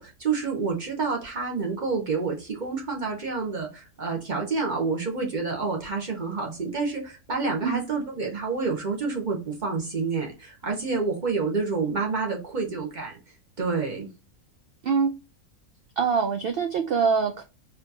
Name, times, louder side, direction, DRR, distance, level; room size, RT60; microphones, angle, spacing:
voice 1, 0.0-13.2 13.6-14.1, right 4 dB, 40° right, 0.9 m, -28 dB
voice 2, 16.0-17.4, right 5 dB, 85° right, 0.5 m, -24 dB
4.3 x 2.8 x 2.7 m
omnidirectional pair, 1.5 m